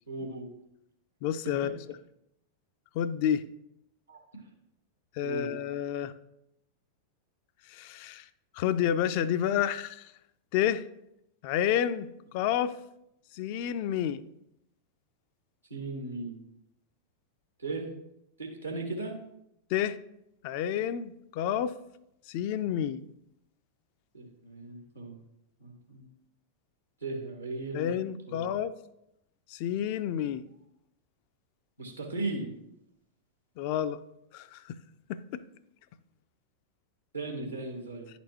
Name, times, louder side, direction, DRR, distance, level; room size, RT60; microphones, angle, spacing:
voice 1, 0.1-0.5 1.6-1.7 4.1-4.4 5.2-5.5 15.7-16.4 17.6-17.9 18.4-19.2 24.1-25.1 25.6-26.1 27.0-27.9 28.3-28.5 31.8-32.5 37.1-38.1, right 2 dB, 80° right, 1.4 m, -37 dB
voice 2, 1.2-1.8 2.9-3.4 5.2-6.1 7.7-8.2 8.5-10.1 10.5-10.8 11.4-12.1 12.3-12.8 13.3-14.2 19.7-20.0 20.4-21.7 22.3-23.0 27.7-28.7 29.5-30.4 33.6-34.0 34.3-34.8 35.1-35.4, left 10 dB, 45° left, 0.3 m, -29 dB
11.0 x 4.3 x 2.9 m
figure-of-eight pair, 90°, 0 cm